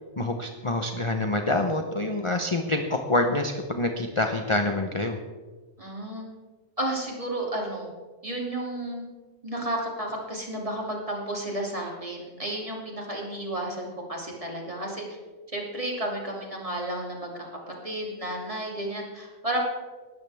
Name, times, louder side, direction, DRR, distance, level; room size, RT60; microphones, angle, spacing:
voice 1, 0.2-5.2, left 2 dB, 25° left, 4 dB, 0.8 m, -26 dB
voice 2, 5.8-6.2 6.8-7.9 8.2-9.1 9.4-15.0 15.5-17.5 17.8-19.6, right 1 dB, 25° right, -2 dB, 2.9 m, -32 dB
19.0 x 13.0 x 3.5 m, 1.3 s
omnidirectional pair, 1.3 m